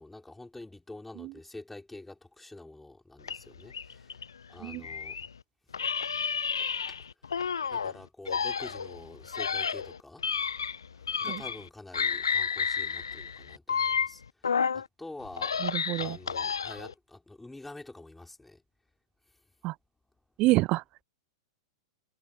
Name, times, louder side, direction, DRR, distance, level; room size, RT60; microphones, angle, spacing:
voice 1, 0.0-4.2 4.5-5.2 6.2-7.0 7.7-10.3 10.9-14.5 14.7-15.5 16.0-18.6, left 2 dB, 5° left, 5.5 m, -47 dB
sound 1, 3.2-5.3 5.7-7.9 8.3-11.7 11.9-14.9 15.2-16.9, left 6 dB, 70° left, 1.1 m, -31 dB
voice 2, 15.6-16.2 19.6-19.8 20.4-20.8, right 20 dB, 35° right, 0.5 m, -27 dB
figure-of-eight pair, 95°, 2 cm